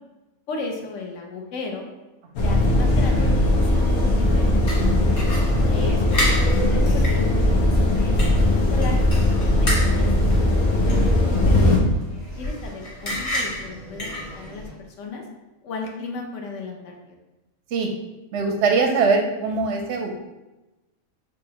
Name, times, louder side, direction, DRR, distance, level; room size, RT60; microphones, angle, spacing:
voice 1, 0.5-1.9 2.4-3.9 4.2-4.9 5.7-9.3 9.5-10.1 10.4-10.6 11.5-11.9 12.4-14.1 14.4-14.7 15.0-15.2 15.6-17.2, left 4 dB, 65° left, 2 dB, 1.0 m, -34 dB
sound 1, 2.4-11.8, left 1 dB, 90° left, 1.3 m, -19 dB
sound 2, 4.7-14.7, equal, 30° left, 1.1 m, -31 dB
voice 2, 18.3-20.2, right 4 dB, 65° right, 3 dB, 0.7 m, -22 dB
6.4 x 2.6 x 2.8 m, 1.0 s
omnidirectional pair, 1.5 m